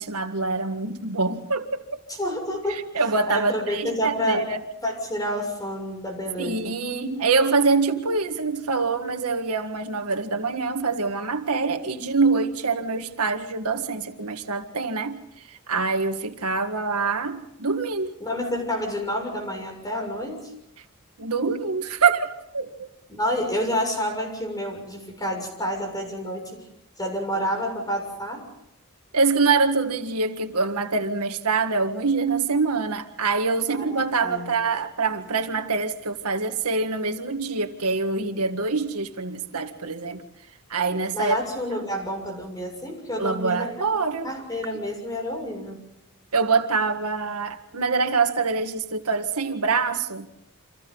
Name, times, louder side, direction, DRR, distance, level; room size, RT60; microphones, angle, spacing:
voice 1, 0.0-2.0 2.7-4.6 6.4-18.1 21.2-22.9 29.1-40.2 40.7-41.4 43.2-44.3 46.3-50.3, right 4 dB, 90° right, 1.8 m, -25 dB
voice 2, 2.2-2.9 3.3-4.5 4.8-6.7 18.2-20.5 23.1-26.6 27.0-28.4 33.7-34.6 41.1-43.7 44.2-45.8, equal, 15° left, 6.8 m, -29 dB
29.5 x 26.5 x 4.0 m
head